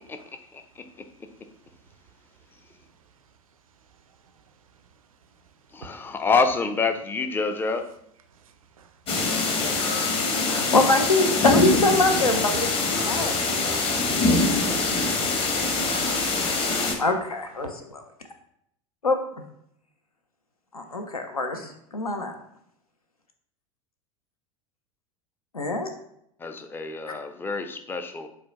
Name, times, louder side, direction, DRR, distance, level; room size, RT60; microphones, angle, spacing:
voice 1, 0.5-1.1 5.7-7.9 26.4-28.3, left 4 dB, 10° left, 0.4 m, -27 dB
voice 2, 8.3-10.7, right 6 dB, 75° right, 0.5 m, -54 dB
sound 1, 9.1-16.9, left 3 dB, 30° left, 0.8 m, -24 dB
voice 3, 10.5-12.7 13.0-13.6 14.1-14.3 16.1-16.2 16.4-18.0 19.0-19.4 20.7-22.3 25.5-25.9, left 2 dB, 85° left, 0.5 m, -25 dB
4.9 x 2.2 x 4.0 m
figure-of-eight pair, 80°, 18 cm